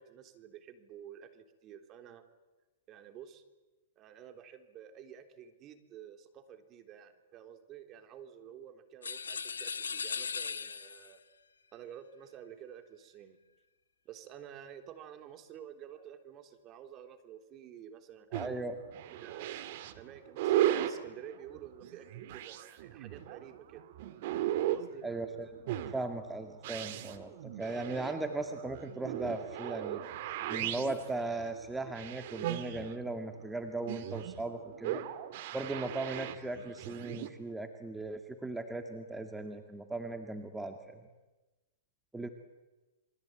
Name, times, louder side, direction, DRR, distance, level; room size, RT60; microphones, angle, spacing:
voice 1, 0.0-2.2 2.9-3.4 4.0-11.2 11.7-13.4 14.1-18.6 19.1-19.5 19.9-23.9 24.6-25.1, right 9 dB, 35° right, 7 dB, 3.5 m, -51 dB
sound 1, 9.0-11.2, left 6 dB, 90° left, 1.6 m, -38 dB
voice 2, 18.3-18.8 25.0-25.5 25.9-30.0 30.4-35.0 35.5-40.8 42.1-42.3, right 2 dB, 5° right, 6 dB, 2.1 m, -38 dB
sound 2, 18.3-37.3, right 12 dB, 55° right, 2.4 m, -37 dB
28.0 x 23.0 x 9.1 m, 1.1 s
hypercardioid pair, 120°, 0 cm